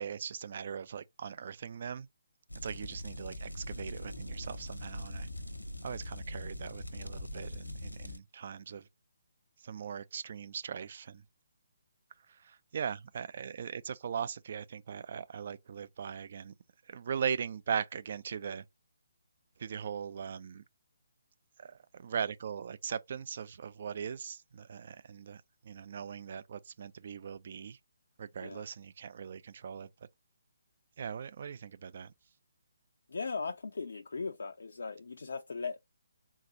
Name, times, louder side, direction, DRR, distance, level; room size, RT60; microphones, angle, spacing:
voice 1, 0.0-2.1 2.6-5.3 5.8-8.9 9.6-11.2 12.3-16.5 16.9-18.6 19.6-20.6 21.6-27.8 28.2-29.9 31.0-32.1, right 7 dB, 45° right, 0.3 m, -39 dB
sound 1, 2.5-8.2, left 1 dB, 85° left, 0.8 m, -42 dB
voice 2, 33.1-35.8, left 4 dB, 60° left, 0.3 m, -38 dB
3.8 x 2.3 x 2.7 m
figure-of-eight pair, 140°, 0 cm